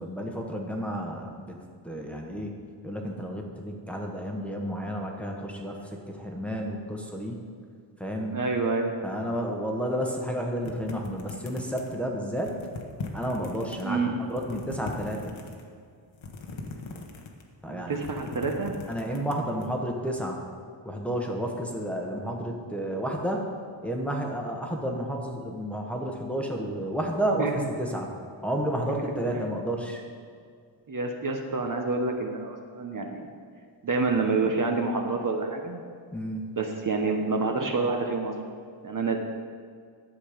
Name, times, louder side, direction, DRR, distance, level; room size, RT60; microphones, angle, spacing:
voice 1, 0.0-1.6 1.8-2.5 2.8-5.8 6.1-7.4 8.0-8.4 9.0-12.5 13.1-14.0 14.3-15.3 17.6-18.0 18.9-20.4 20.8-23.4 23.8-27.5 27.8-28.1 28.4-30.0 36.1-36.5, equal, 5° left, 0 dB, 1.0 m, -31 dB
voice 2, 8.3-8.9 13.8-14.2 17.7-18.8 27.4-27.7 29.3-29.4 30.9-33.3 33.8-35.8 36.6-38.3 38.8-39.2, right 3 dB, 45° right, 3 dB, 0.8 m, -28 dB
sound 1, 10.6-12.0 12.4-13.8 14.2-15.6 16.1-17.5 17.8-19.7, left 3 dB, 70° left, 1.2 m, -39 dB
11.5 x 7.6 x 5.0 m, 2.1 s
wide cardioid pair, 145°, 47 cm